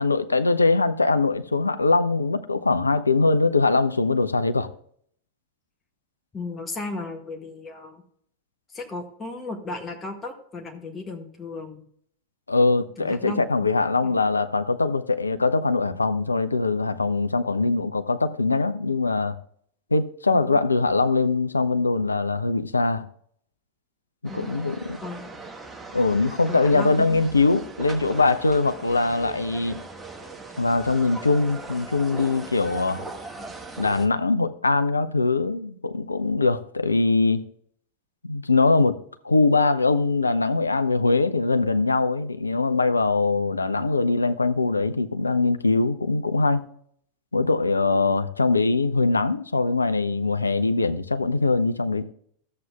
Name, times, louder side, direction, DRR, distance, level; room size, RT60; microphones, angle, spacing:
voice 1, 0.0-4.7 12.5-19.4 19.9-23.1 24.3-25.0 25.9-29.8 30.6-33.0 33.8-37.4 38.2-39.0 39.2-46.6 47.3-52.0, left 3 dB, 80° left, 0.5 m, -22 dB
voice 2, 6.3-8.0 8.7-11.8 13.0-13.7 14.0-14.2 24.3-24.5 25.0-25.3 26.5-27.2, left 3 dB, 20° left, 1.6 m, -35 dB
sound 1, 24.2-34.1, right 3 dB, 10° right, 1.2 m, -39 dB
13.0 x 7.6 x 2.3 m
figure-of-eight pair, 90°, 0 cm